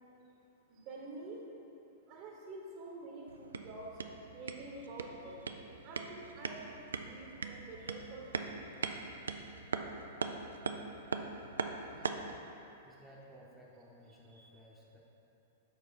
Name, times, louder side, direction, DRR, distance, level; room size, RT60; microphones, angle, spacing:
voice 1, 0.7-1.4 2.1-3.9 4.3-5.4 5.8-8.6 14.3-14.5, right 2 dB, 40° right, -1 dB, 1.1 m, -48 dB
sound 1, 3.3-12.4, right 4 dB, 75° right, 0.3 m, -41 dB
voice 2, 11.9-12.3 12.8-15.0, equal, 5° right, -5 dB, 0.9 m, -57 dB
7.1 x 4.5 x 4.1 m, 3.0 s
figure-of-eight pair, 105°, 0 cm